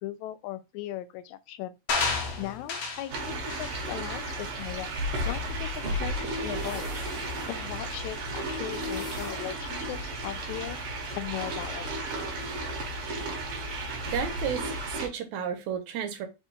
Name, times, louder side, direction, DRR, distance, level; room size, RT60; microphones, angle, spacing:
voice 1, 0.0-1.7 2.4-5.0 5.2-6.9 7.5-10.8 11.1-12.1 13.2-13.4, left 13 dB, 85° left, 1.9 m, -38 dB
sound 1, 1.9-3.1 3.5-3.8 4.3-4.5, left 4 dB, 65° left, 1.5 m, -30 dB
sound 2, 1.9-12.8, left 2 dB, 40° left, 0.9 m, -51 dB
sound 3, 3.1-15.1, right 1 dB, 65° right, 1.7 m, -33 dB
voice 2, 14.1-16.3, right 8 dB, 80° right, 2.1 m, -32 dB
4.7 x 2.3 x 4.4 m
omnidirectional pair, 3.3 m